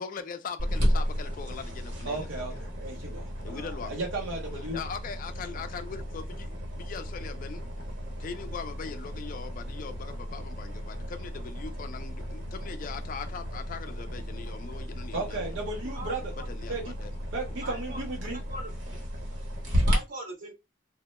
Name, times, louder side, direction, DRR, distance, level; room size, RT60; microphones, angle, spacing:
voice 1, 0.0-2.6 3.4-4.0 4.5-7.6 8.2-15.5 16.4-17.1, left 6 dB, 45° left, 0.3 m, -40 dB
sound 1, 0.6-20.0, equal, 70° right, 1.0 m, -34 dB
voice 2, 2.0-4.8 15.1-16.3 16.7-16.9 17.3-18.4, right 3 dB, 85° right, 0.6 m, -35 dB
voice 3, 15.8-16.5 17.6-18.0 18.3-18.7 19.9-20.5, right 1 dB, 45° right, 0.5 m, -40 dB
2.1 x 2.0 x 2.9 m
head